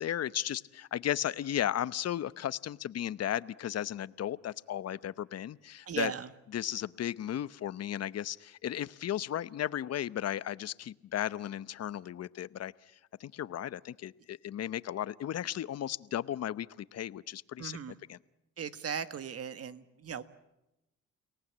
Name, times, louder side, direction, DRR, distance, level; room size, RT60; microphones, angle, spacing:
voice 1, 0.0-6.1 6.5-12.7 13.2-17.8 18.1-18.2, left 11 dB, 55° left, 17 dB, 0.8 m, -35 dB
voice 2, 5.9-6.3 17.6-18.0 18.6-20.2, right 7 dB, 50° right, 11 dB, 1.6 m, -37 dB
30.0 x 18.5 x 8.7 m, 0.91 s
cardioid pair, 90°, 30 cm